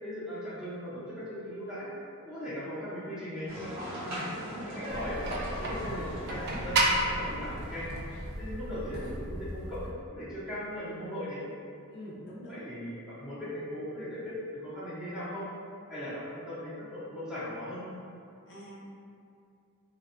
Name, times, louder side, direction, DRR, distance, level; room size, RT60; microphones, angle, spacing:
voice 1, 0.0-1.9 2.2-3.5 4.7-5.2 5.6-6.8 7.1-7.9 8.4-9.9 10.2-11.4 12.5-15.5 15.9-17.8, equal, 5° right, -12 dB, 0.6 m, -38 dB
sound 1, 3.5-8.6, equal, 70° right, 1.0 m, -40 dB
voice 2, 4.0-4.6 11.9-12.7 18.5-18.8, equal, 55° left, -7 dB, 0.5 m, -44 dB
sound 2, 4.9-9.9, right 2 dB, 45° right, 0.3 m, -33 dB
2.5 x 2.2 x 2.5 m, 2.4 s
head